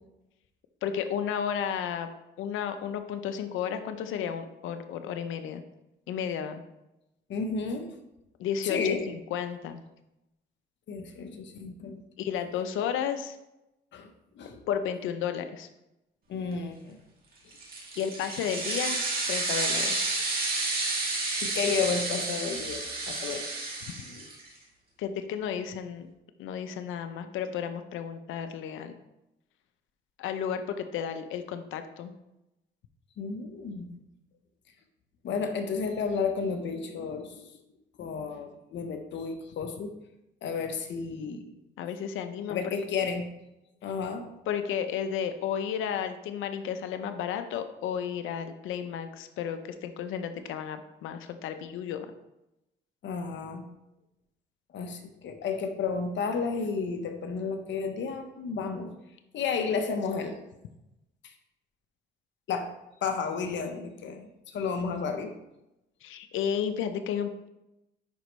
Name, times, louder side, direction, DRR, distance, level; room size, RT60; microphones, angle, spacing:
voice 1, 0.8-2.1 2.4-5.6 6.1-6.6 8.4-8.8 9.1-9.8 12.2-13.4 14.7-15.7 18.0-19.0 19.3-20.1 25.0-26.1 26.4-28.9 30.2-32.1 41.8-42.7 44.5-52.1 66.0-67.5, left 8 dB, 85° left, 8 dB, 0.6 m, -32 dB
voice 2, 7.3-7.9 8.6-9.0 10.9-12.0 13.9-14.1 14.4-14.6 16.3-17.0 21.4-23.4 24.1-24.3 33.2-34.0 35.2-37.5 38.0-39.9 40.4-41.4 42.5-43.3 43.8-44.3 53.0-53.6 54.7-58.9 59.3-60.4 62.5-62.7 63.0-64.3 64.5-65.3, left 5 dB, 70° left, 6 dB, 1.0 m, -32 dB
sound 1, 17.5-24.5, right 3 dB, 50° right, 2.2 m, -31 dB
10.0 x 4.4 x 3.1 m, 0.91 s
cardioid pair, 90°, 20 cm